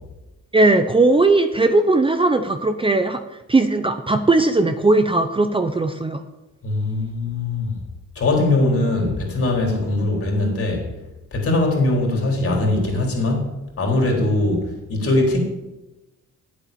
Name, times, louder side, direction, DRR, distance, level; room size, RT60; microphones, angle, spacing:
voice 1, 0.5-3.2 3.5-6.2, right 2 dB, 15° right, 8 dB, 0.7 m, -18 dB
voice 2, 6.6-7.8 8.2-10.9 11.3-15.4, left 2 dB, 50° left, 0 dB, 3.9 m, -21 dB
9.0 x 8.0 x 6.9 m, 1.0 s
cardioid pair, 90°, 30 cm